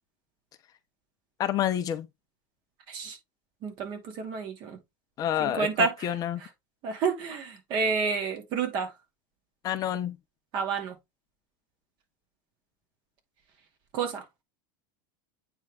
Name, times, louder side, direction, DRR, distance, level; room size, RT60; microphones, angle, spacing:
voice 1, 1.4-2.1 5.2-6.4 9.6-10.2, left 11 dB, 35° left, 0.8 m, -28 dB
voice 2, 3.6-4.8 5.4-6.1 6.8-8.9 10.5-11.0 13.9-14.2, right 5 dB, 50° right, 2.4 m, -29 dB
8.9 x 3.6 x 3.6 m
supercardioid pair, 140°, 11 cm